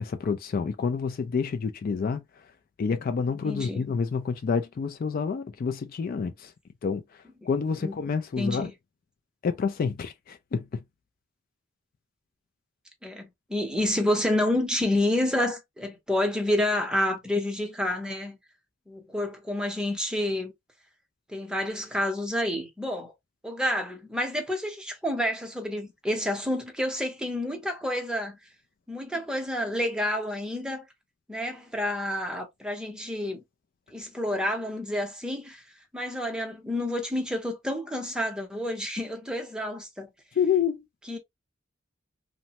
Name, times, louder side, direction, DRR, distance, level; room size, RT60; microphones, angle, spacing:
voice 1, 0.0-2.2 2.8-6.5 6.8-7.0 7.4-8.7 9.4-10.8 40.4-40.8, left 6 dB, 50° left, 0.3 m, -28 dB
voice 2, 3.4-3.8 7.8-8.0 8.4-8.7 13.0-18.4 18.9-20.5 21.3-23.1 23.4-28.4 28.9-30.9 31.3-33.4 33.9-35.6 35.9-40.1 41.1-41.2, left 1 dB, 5° right, 0.7 m, -29 dB
3.1 x 2.0 x 2.8 m
head